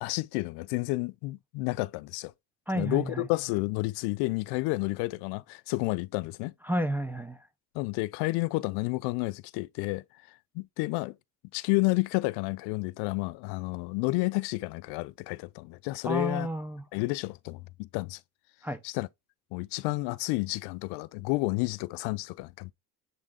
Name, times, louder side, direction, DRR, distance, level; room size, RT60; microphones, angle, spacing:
voice 1, 0.0-2.3 2.7-6.5 7.7-10.0 10.5-11.1 11.5-16.5 16.9-18.2 18.8-19.1 19.5-22.7, left 23 dB, 70° left, 0.5 m, -30 dB
voice 2, 2.7-3.3 6.6-7.5 16.0-16.8 18.6-18.8, right 1 dB, 5° right, 0.5 m, -31 dB
7.6 x 3.7 x 3.5 m
cardioid pair, 150°, 41 cm